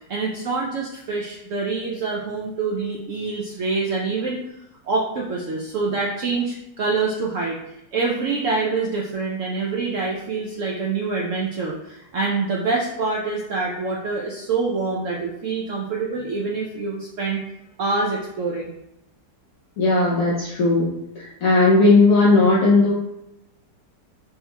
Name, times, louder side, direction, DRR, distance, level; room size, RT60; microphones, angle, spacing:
voice 1, 0.1-4.4 4.9-7.6 7.9-17.4 17.8-18.7, right 4 dB, 85° right, -3 dB, 0.6 m, -25 dB
voice 2, 19.8-20.9 21.2-22.9, left 3 dB, 60° left, -6 dB, 1.0 m, -16 dB
5.3 x 3.0 x 2.2 m, 0.87 s
omnidirectional pair, 1.9 m